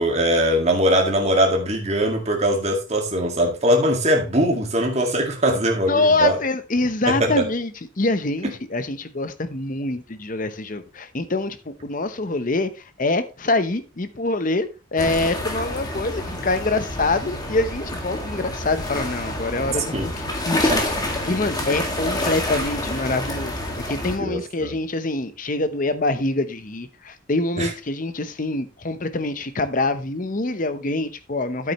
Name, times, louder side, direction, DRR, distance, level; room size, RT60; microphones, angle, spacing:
voice 1, 0.0-6.4 7.1-7.4 19.9-20.1 24.2-24.7 27.6-27.7, equal, 30° right, 1 dB, 2.0 m, -21 dB
voice 2, 5.9-7.7 8.0-31.7, left 2 dB, 40° left, 11 dB, 0.8 m, -25 dB
sound 1, 15.0-24.2, left 1 dB, 20° left, 2.0 m, -28 dB
9.8 x 8.6 x 3.1 m, 0.30 s
head